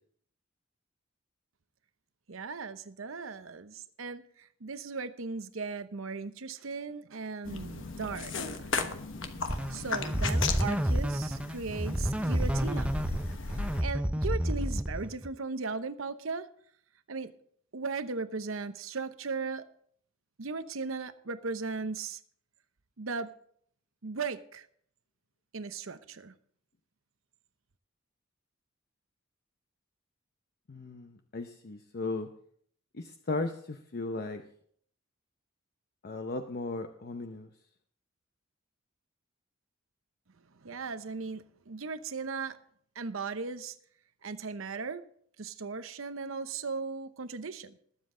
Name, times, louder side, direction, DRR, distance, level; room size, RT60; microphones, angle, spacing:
voice 1, 2.3-8.7 9.5-12.9 13.5-16.5 17.1-17.3 17.7-19.6 20.4-22.2 23.0-23.3 24.0-24.7 25.5-26.3 40.5-42.6 42.9-43.8 44.2-45.0 45.4-47.8, right 4 dB, 75° right, 12 dB, 0.8 m, -37 dB
sound 1, 7.4-13.8, left 4 dB, 65° left, 1.2 m, -36 dB
sound 2, 9.5-15.3, equal, 5° right, 0.5 m, -30 dB
voice 2, 30.7-32.3 32.9-34.4 36.0-37.5, left 3 dB, 50° left, 6 dB, 0.8 m, -36 dB
20.5 x 7.6 x 3.8 m, 0.62 s
head